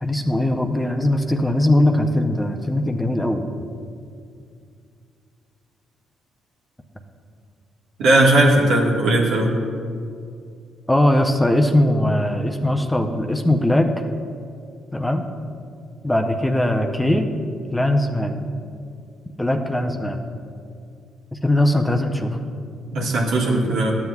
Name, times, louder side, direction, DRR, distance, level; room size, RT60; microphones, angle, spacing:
voice 1, 0.0-3.5 10.9-13.9 14.9-15.3 16.0-17.3 17.7-18.5 19.4-20.2 21.3-22.4, left 1 dB, 10° left, 3 dB, 0.6 m, -20 dB
voice 2, 8.0-9.5 22.9-23.9, right 1 dB, 85° right, -3 dB, 1.5 m, -17 dB
13.0 x 7.7 x 2.3 m, 2.3 s
cardioid pair, 90°, 0 cm